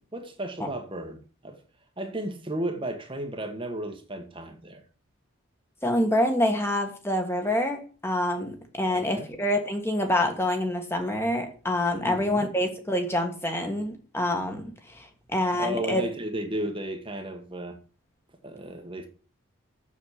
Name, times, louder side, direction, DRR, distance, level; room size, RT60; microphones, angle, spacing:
voice 1, 0.1-1.6 2.0-4.8 8.9-9.3 12.0-12.5 15.5-17.8 18.4-19.1, right 1 dB, 25° right, 1.3 m, -34 dB
voice 2, 5.8-16.0, left 1 dB, 10° left, 1.6 m, -26 dB
7.4 x 7.3 x 8.3 m
head